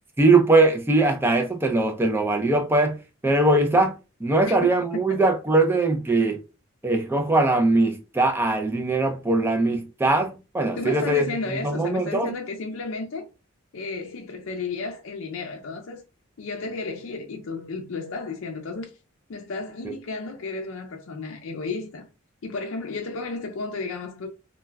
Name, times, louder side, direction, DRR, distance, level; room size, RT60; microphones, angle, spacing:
voice 1, 0.2-3.0 3.2-6.4 6.8-11.3 11.6-12.3, right 2 dB, 10° right, 0.3 m, -21 dB
voice 2, 10.8-13.3 13.7-16.0 16.4-18.9 19.3-22.1 22.4-24.3, left 3 dB, 70° left, 0.4 m, -33 dB
2.2 x 2.2 x 3.3 m
head